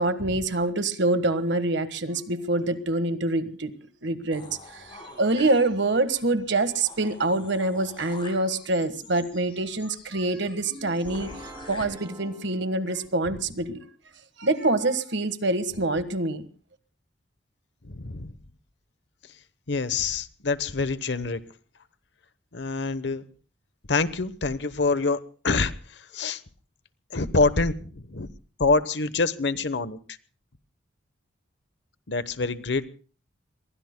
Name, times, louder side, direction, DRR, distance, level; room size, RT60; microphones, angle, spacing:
voice 1, 0.0-3.7 4.0-4.4 4.7-11.3 11.7-13.8 14.4-16.5, right 2 dB, 65° right, 10 dB, 1.5 m, -25 dB
sound 1, 4.3-6.0 6.4-6.5 6.7-11.8, left 2 dB, 30° left, 5.4 m, -46 dB
sound 2, 10.7-13.5, right 1 dB, 20° right, 2.5 m, -46 dB
voice 2, 17.8-18.4 19.7-21.4 22.5-23.2 23.9-25.2 25.4-26.4 27.1-28.3 28.6-30.0 32.1-32.8, left 3 dB, 60° left, 14 dB, 1.0 m, -26 dB
27.0 x 22.5 x 2.2 m, 0.40 s
head